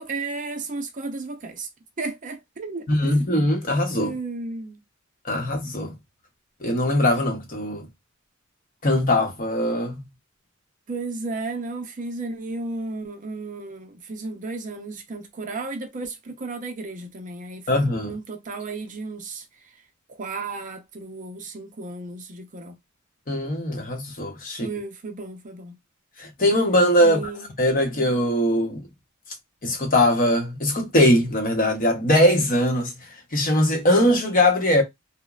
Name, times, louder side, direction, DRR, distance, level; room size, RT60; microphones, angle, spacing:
voice 1, 0.0-1.7 2.0-3.2 4.0-4.8 10.9-19.7 20.1-22.8 24.6-25.7 27.0-27.5, right 3 dB, 40° right, 0.6 m, -34 dB
voice 2, 2.9-4.1 5.2-5.9 6.6-7.9 8.8-10.1 17.7-18.1 23.3-24.7 26.2-27.3 27.6-28.9 29.6-32.9 33.3-34.8, left 1 dB, 45° left, 0.8 m, -21 dB
2.9 x 2.1 x 2.3 m
head